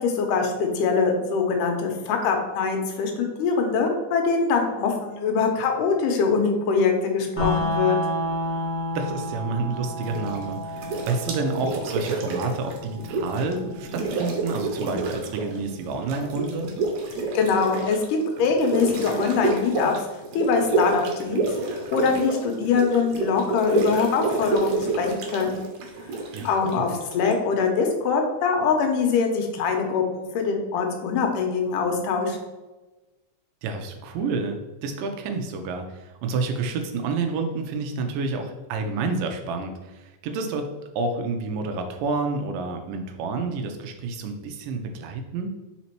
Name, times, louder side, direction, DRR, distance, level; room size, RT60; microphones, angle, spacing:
voice 1, 0.0-8.0 17.3-19.9 20.4-25.6 26.4-32.4, left 5 dB, 80° left, 3 dB, 2.3 m, -23 dB
sound 1, 7.4-17.3, left 1 dB, 10° left, 0.6 m, -32 dB
voice 2, 9.0-16.7 26.3-26.9 33.6-45.5, right 3 dB, 90° right, 5 dB, 2.3 m, -29 dB
sound 2, 10.0-10.4 10.8-13.5 13.8-15.6 15.8-27.3, right 3 dB, 70° right, 2.2 m, -28 dB
5.1 x 4.2 x 4.4 m, 1.1 s
omnidirectional pair, 3.9 m